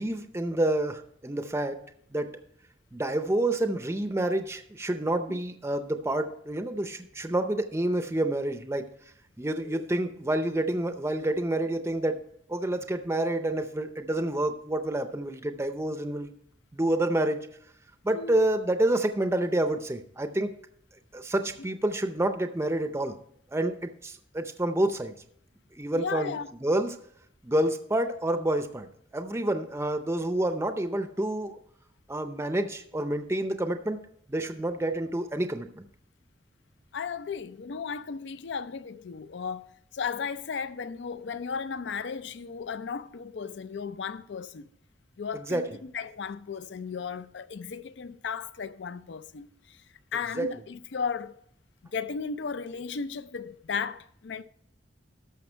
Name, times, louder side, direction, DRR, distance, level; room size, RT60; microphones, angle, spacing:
voice 1, 0.0-1.8 2.1-2.3 2.9-8.9 9.4-12.2 12.5-16.3 16.7-17.5 18.0-20.5 21.1-23.1 23.5-25.1 25.7-27.0 27.4-31.6 32.1-34.0 34.3-35.9 45.3-45.6 50.4-50.5, right 1 dB, 15° right, 0.5 m, -28 dB
voice 2, 18.1-18.4 21.6-21.7 25.9-26.5 36.9-39.7 39.9-44.7 45.2-49.8 50.1-51.4 51.9-54.4, left 6 dB, 75° left, 0.5 m, -35 dB
13.5 x 5.7 x 4.4 m
head